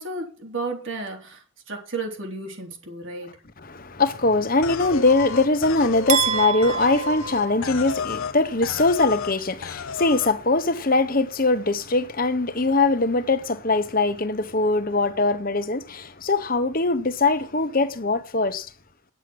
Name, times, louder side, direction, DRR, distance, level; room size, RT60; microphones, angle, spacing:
voice 1, 0.0-3.4, right 3 dB, 65° right, 3.9 m, -33 dB
voice 2, 3.6-18.7, left 3 dB, 45° left, 1.1 m, -22 dB
sound 1, 4.6-8.4 8.6-9.3 9.6-10.3, left 6 dB, 80° left, 0.6 m, -32 dB
sound 2, 6.1-8.2, right 7 dB, 35° right, 1.9 m, -27 dB
9.9 x 7.8 x 6.4 m
head